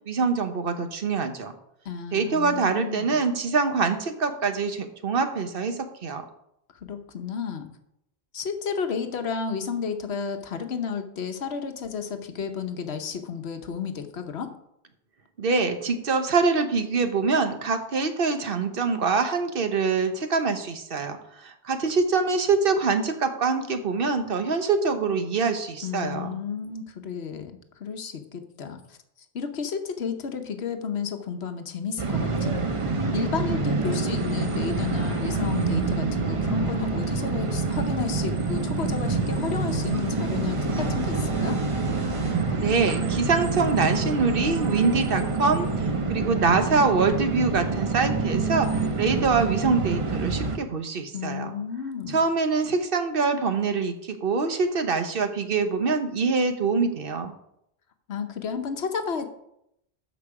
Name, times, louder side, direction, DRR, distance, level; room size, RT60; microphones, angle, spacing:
voice 1, 0.1-1.5 2.1-6.2 15.4-26.3 42.6-51.5 52.1-57.3, right 4 dB, 60° right, 8 dB, 1.1 m, -24 dB
voice 2, 1.8-3.2 6.8-7.7 8.3-14.5 25.8-29.0 29.3-32.6 33.1-41.6 51.1-52.2 58.1-59.3, left 6 dB, 75° left, 7 dB, 1.2 m, -32 dB
sound 1, 32.0-50.6, right 4 dB, 35° right, 0.7 m, -27 dB
sound 2, 38.9-44.2, left 3 dB, 90° right, 2.5 m, -39 dB
13.0 x 5.3 x 4.8 m, 0.78 s
omnidirectional pair, 1.1 m